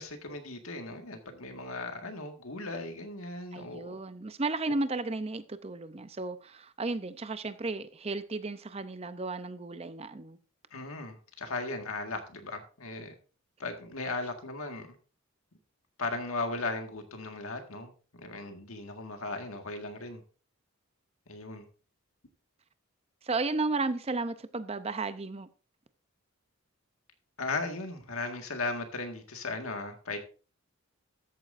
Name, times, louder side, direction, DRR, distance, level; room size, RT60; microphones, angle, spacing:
voice 1, 0.0-4.0 4.7-4.8 10.7-13.2 13.6-15.0 16.0-20.2 21.3-21.7 27.4-30.2, left 3 dB, 75° left, 1.7 m, -37 dB
voice 2, 3.5-10.4 23.2-25.5, right 3 dB, 25° right, 0.6 m, -34 dB
13.5 x 9.0 x 2.6 m
head